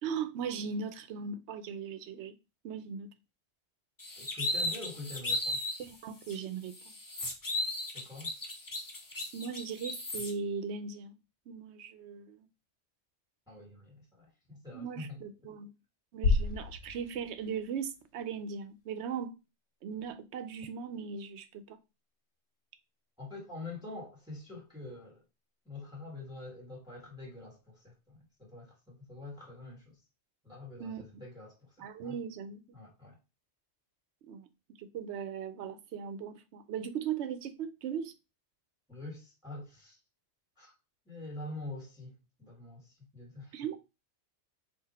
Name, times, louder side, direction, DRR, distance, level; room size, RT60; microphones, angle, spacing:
voice 1, 0.0-2.3 2.6-3.1 5.8-6.9 9.3-11.2 11.5-12.5 14.7-15.7 16.1-19.3 19.8-21.8 30.8-31.1 31.8-32.6 34.3-34.5 34.8-38.1 43.5-43.8, right 6 dB, 75° right, 0.9 m, -38 dB
sound 1, 4.0-5.8 6.3-6.4 6.7-10.3, left 1 dB, 20° left, 0.6 m, -35 dB
voice 2, 4.2-5.6 7.9-8.3 13.5-15.2 23.2-25.2 25.6-30.0 30.4-32.2 32.7-33.2 38.9-40.0 40.6-40.7 41.0-43.6, left 2 dB, 5° right, 1.4 m, -45 dB
sound 2, 16.2-18.3, left 4 dB, 75° left, 1.0 m, -31 dB
3.9 x 2.4 x 4.1 m
omnidirectional pair, 1.2 m